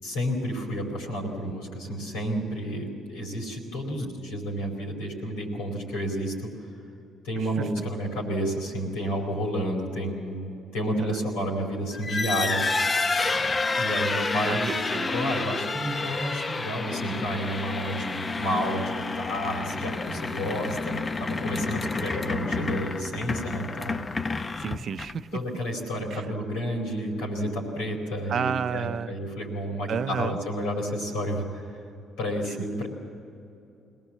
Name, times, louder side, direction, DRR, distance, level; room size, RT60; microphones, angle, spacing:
voice 1, 0.0-6.5 7.2-12.6 13.8-14.7 15.1-24.0 25.3-31.7 32.2-32.9, equal, 85° left, -1 dB, 4.7 m, -30 dB
sound 1, 11.9-25.4, left 3 dB, 35° left, 0.8 m, -29 dB
voice 2, 14.4-15.1 22.0-22.1 24.6-25.3 26.1-26.2 28.3-29.1 29.9-30.4, right 7 dB, 60° right, 13 dB, 0.6 m, -31 dB
22.5 x 18.0 x 7.5 m, 2.7 s
supercardioid pair, 60°, 0 cm